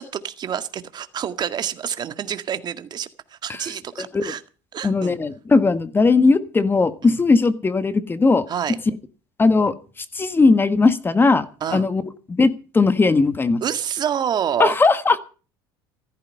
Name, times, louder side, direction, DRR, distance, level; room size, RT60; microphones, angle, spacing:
voice 1, 0.0-4.4 4.7-5.2 7.0-7.2 8.5-8.8 11.6-11.9 13.6-14.7, right 8 dB, 40° right, 10 dB, 1.8 m, -27 dB
voice 2, 4.8-8.4 9.4-9.7 10.1-11.4 11.7-13.6 14.6-15.2, left 3 dB, 20° left, 12 dB, 1.5 m, -18 dB
15.0 x 13.5 x 5.5 m, 0.37 s
supercardioid pair, 95°, 11 cm